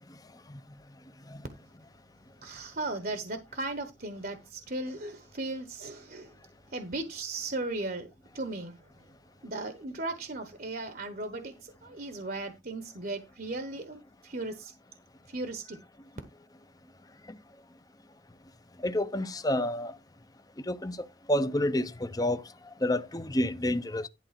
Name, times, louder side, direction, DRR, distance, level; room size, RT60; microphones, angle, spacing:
voice 1, 2.4-6.3 6.7-8.1 8.3-9.1 9.4-14.7 15.3-15.8, right 2 dB, 50° right, 1.1 m, -37 dB
voice 2, 18.8-19.9 20.7-21.0 21.3-22.4 22.8-24.1, left 1 dB, 20° left, 0.7 m, -28 dB
11.5 x 3.8 x 5.8 m
head